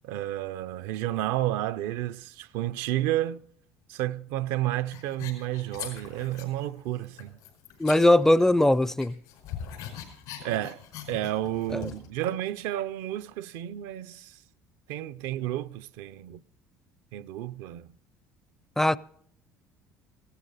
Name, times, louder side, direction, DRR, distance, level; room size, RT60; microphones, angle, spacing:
voice 1, 0.0-3.4 3.9-7.4 10.4-10.8 11.1-14.4 14.9-16.4 17.1-17.9, right 14 dB, 80° right, 0.5 m, -31 dB
sound 1, 4.9-6.7 7.0-8.7 9.0-12.1, left 9 dB, 80° left, 4.9 m, -42 dB
voice 2, 7.8-9.1 11.7-11.8 18.8-19.0, left 1 dB, 5° left, 0.4 m, -20 dB
17.0 x 12.5 x 4.0 m
supercardioid pair, 85°, 6 cm